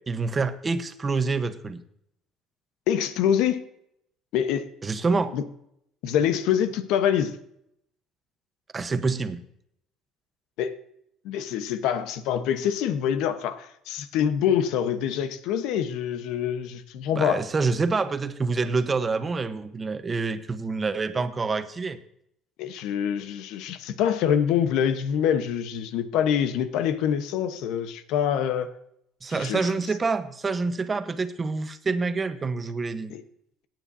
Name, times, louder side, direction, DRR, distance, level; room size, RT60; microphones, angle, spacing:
voice 1, 0.1-1.8 4.8-5.3 8.7-9.4 17.1-22.0 29.2-33.1, right 4 dB, 25° right, 10 dB, 1.1 m, -27 dB
voice 2, 2.9-3.7 4.3-4.7 5.3-5.4 6.0-7.4 10.6-10.7 11.2-17.4 22.6-28.7 29.3-29.7 33.1-33.2, left 9 dB, 80° left, 10 dB, 1.1 m, -25 dB
17.5 x 9.1 x 2.8 m, 0.74 s
cardioid pair, 100°, 0 cm